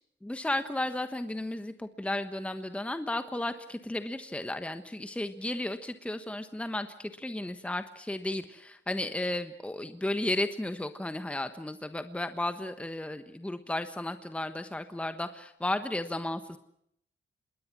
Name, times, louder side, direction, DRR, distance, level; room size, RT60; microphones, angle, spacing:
voice 1, 0.2-16.6, left 1 dB, 5° left, 9 dB, 1.3 m, -34 dB
27.0 x 21.0 x 6.1 m, 0.70 s
wide cardioid pair, 130°, 19 cm